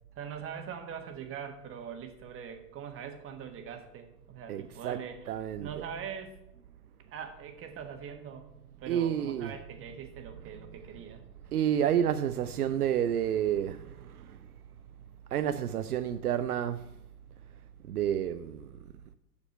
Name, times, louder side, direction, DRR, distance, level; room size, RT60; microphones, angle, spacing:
voice 1, 0.1-5.2 5.6-6.4 7.1-8.5 8.8-11.2, right 7 dB, 30° right, 1.4 m, -42 dB
voice 2, 4.5-5.0 5.3-5.9 8.9-9.6 11.5-14.5 15.3-16.9 17.8-18.8, right 10 dB, 75° right, 0.6 m, -30 dB
7.1 x 6.9 x 5.4 m
figure-of-eight pair, 95°, 46 cm